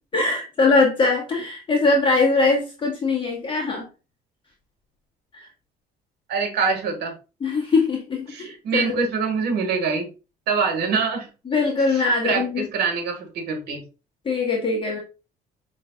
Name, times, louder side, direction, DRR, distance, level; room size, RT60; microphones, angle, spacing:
voice 1, 0.1-3.9 5.3-5.5 7.4-9.0 11.5-12.6 14.2-15.0, left 3 dB, 30° left, -1 dB, 1.3 m, -21 dB
voice 2, 6.3-7.1 8.3-10.0 10.5-11.3 11.9-13.8, right 5 dB, 75° right, 5 dB, 1.6 m, -25 dB
5.4 x 3.3 x 2.3 m, 0.31 s
cardioid pair, 110°, 17 cm